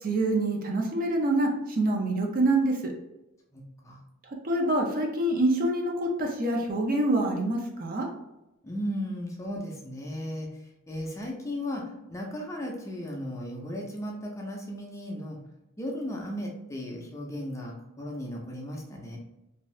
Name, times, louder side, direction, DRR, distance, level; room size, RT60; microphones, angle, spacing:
voice 1, 0.0-2.9 4.3-8.1, right 2 dB, 40° right, 1 dB, 0.5 m, -26 dB
voice 2, 3.5-4.0 8.6-10.5 10.9-11.8 12.1-15.4 15.8-19.2, equal, 15° left, -1 dB, 0.5 m, -35 dB
2.6 x 2.4 x 3.1 m, 0.92 s
head